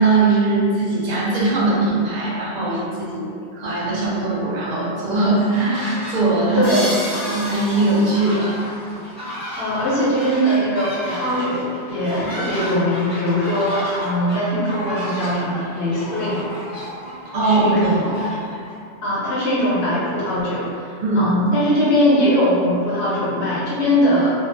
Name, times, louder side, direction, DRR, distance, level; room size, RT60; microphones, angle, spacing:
voice 1, 0.0-6.7 7.2-8.5 12.2-12.3 17.3-17.8 18.0-18.2 21.0-21.3, right 3 dB, 50° right, -6 dB, 0.6 m, -20 dB
sound 1, 5.2-6.2 6.4-18.8, equal, 5° right, 0.6 m, -32 dB
voice 2, 6.5-7.0 9.6-16.4 17.4-18.1 19.0-24.3, equal, 70° left, -9 dB, 1.0 m, -21 dB
sound 2, 6.6-9.3, equal, 50° left, 0.7 m, -33 dB
2.4 x 2.0 x 2.5 m, 2.4 s
omnidirectional pair, 1.1 m